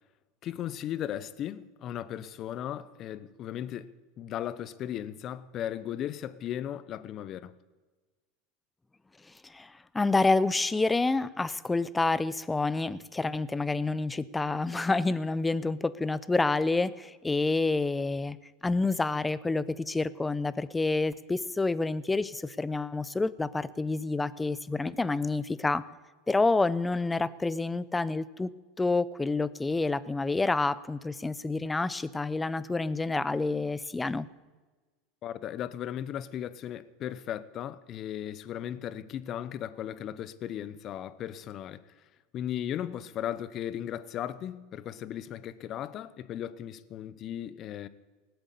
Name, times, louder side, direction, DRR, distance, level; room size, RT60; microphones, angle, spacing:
voice 1, 0.4-7.6 35.2-41.8 42.3-47.9, left 11 dB, 40° left, 0.9 m, -36 dB
voice 2, 9.4-18.4 18.6-25.8 26.3-28.5 28.8-34.3, left 3 dB, 10° left, 0.6 m, -28 dB
18.5 x 8.0 x 8.4 m
supercardioid pair, 120°, 0 cm